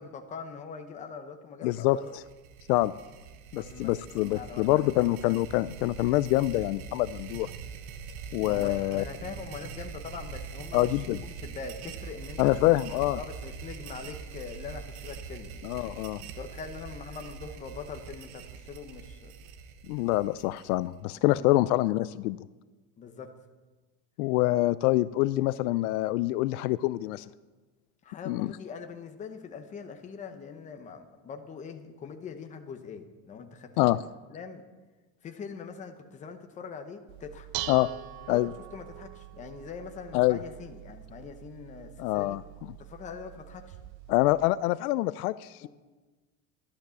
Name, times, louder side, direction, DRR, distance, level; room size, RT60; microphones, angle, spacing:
voice 1, 0.0-2.1 3.5-3.9 4.3-4.9 8.4-12.7 13.0-15.6 16.4-19.3 21.1-21.7 23.0-23.3 28.0-34.0 34.3-34.6 35.2-37.5 38.3-42.4 42.8-43.8 45.6-45.7, left 6 dB, 15° left, 6 dB, 0.8 m, -42 dB
voice 2, 1.6-2.2 2.7-2.9 3.5-7.5 8.3-9.0 10.7-11.2 12.4-13.2 15.6-16.2 19.9-22.4 24.2-27.2 28.3-28.5 33.8-34.0 37.7-37.9 38.3-38.5 40.1-40.4 42.0-42.4 44.1-45.7, left 17 dB, 70° left, 17 dB, 0.5 m, -26 dB
sound 1, 1.9-21.0, right 6 dB, 65° right, 1.2 m, -43 dB
Dishes pots and pans, 37.1-44.5, right 14 dB, 40° right, 0.6 m, -44 dB
12.0 x 11.5 x 6.9 m, 1.2 s
cardioid pair, 170°, 46 cm